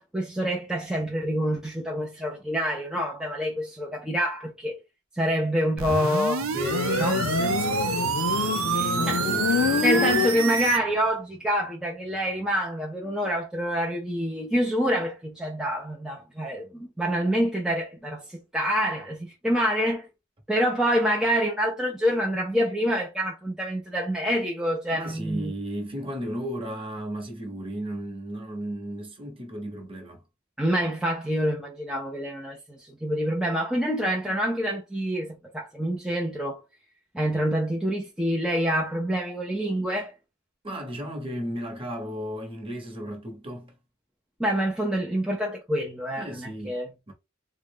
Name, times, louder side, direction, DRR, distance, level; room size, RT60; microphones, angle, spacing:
voice 1, 0.0-4.8 5.1-6.5 7.0-7.2 8.7-9.2 9.8-20.1 20.5-25.5 30.6-36.6 37.1-40.1 44.4-46.9, equal, 5° right, 0.5 m, -27 dB
sound 1, 5.8-10.8, right 6 dB, 75° right, 0.6 m, -27 dB
voice 2, 6.4-7.9 8.3-9.5 24.9-30.2 40.6-43.7 46.2-46.8 47.1-47.2, equal, 25° right, 1.0 m, -35 dB
Motorcycle, 6.5-10.9, left 5 dB, 85° left, 0.4 m, -27 dB
3.7 x 2.2 x 3.5 m
head